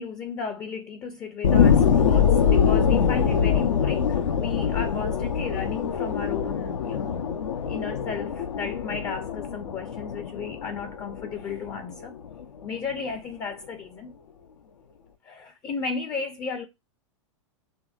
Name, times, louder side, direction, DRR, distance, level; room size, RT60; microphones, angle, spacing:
voice 1, 0.0-7.2 7.7-12.2 12.6-14.1 15.2-16.6, left 5 dB, 25° left, 0.5 m, -34 dB
sound 1, 1.4-12.4 12.9-13.0, left 7 dB, 80° left, 0.5 m, -24 dB
2.9 x 2.6 x 2.3 m
hypercardioid pair, 105°, 16 cm